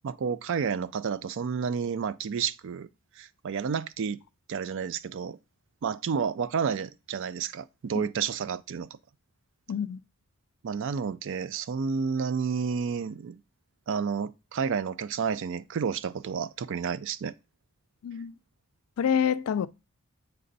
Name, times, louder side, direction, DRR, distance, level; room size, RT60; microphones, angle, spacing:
voice 1, 0.0-2.9 3.2-4.2 4.5-5.4 5.8-8.9 10.6-13.4 13.9-17.3, right 6 dB, 55° right, 0.4 m, -30 dB
voice 2, 9.7-10.0 18.0-18.3 19.0-19.7, left 8 dB, 70° left, 0.3 m, -27 dB
7.5 x 3.4 x 3.9 m
head